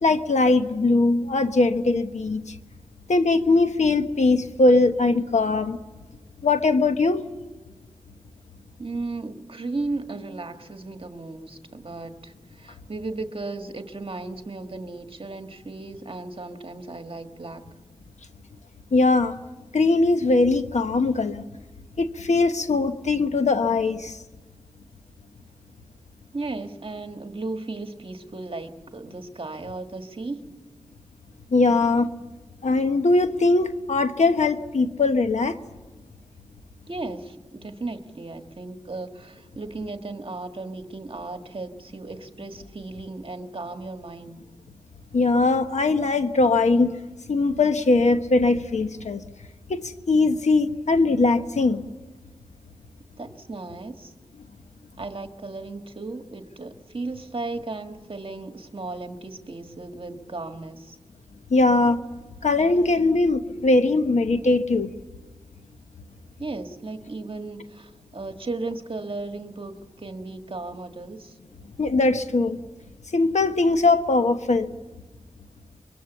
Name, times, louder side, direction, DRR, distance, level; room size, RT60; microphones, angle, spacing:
voice 1, 0.0-2.6 3.1-5.8 6.4-7.3 18.9-19.4 19.7-21.4 22.0-24.2 31.5-32.1 32.6-35.6 45.1-47.0 47.3-49.2 49.7-51.8 61.5-62.0 62.4-64.9 71.8-72.6 73.1-74.7, left 3 dB, 85° left, 8 dB, 1.2 m, -21 dB
voice 2, 8.8-17.6 26.3-30.4 36.9-44.4 53.2-54.1 55.0-61.0 66.4-71.3, right 3 dB, 50° right, 6 dB, 1.6 m, -35 dB
24.5 x 23.0 x 7.3 m, 1.2 s
wide cardioid pair, 65°, 12 cm